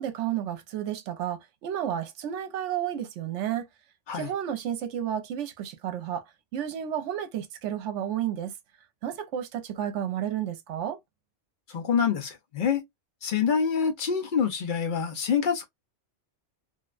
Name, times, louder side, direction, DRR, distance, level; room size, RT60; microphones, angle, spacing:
voice 1, 0.0-3.7 4.1-6.2 6.5-8.5 9.0-11.0, right 10 dB, 80° right, 0.9 m, -31 dB
voice 2, 11.7-12.8 13.2-15.7, left 7 dB, 55° left, 0.6 m, -26 dB
2.5 x 2.1 x 2.3 m
omnidirectional pair, 1.2 m